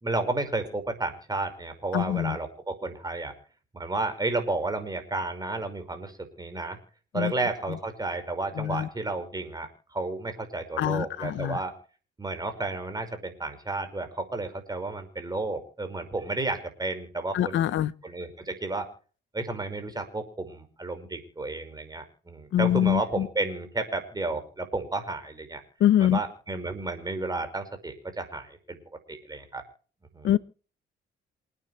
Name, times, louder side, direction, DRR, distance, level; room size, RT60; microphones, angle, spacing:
voice 1, 0.0-3.3 3.7-6.8 7.1-11.7 12.2-18.9 19.3-25.6 26.0-28.8 29.1-29.6 30.1-30.3, right 2 dB, 20° right, 5.4 m, -32 dB
voice 2, 1.9-2.4 7.1-7.3 8.6-8.9 10.8-11.6 17.3-17.9 22.5-23.3 25.8-26.2 30.2-30.4, left 11 dB, 70° left, 0.9 m, -24 dB
28.0 x 9.8 x 3.3 m
cardioid pair, 90°, 20 cm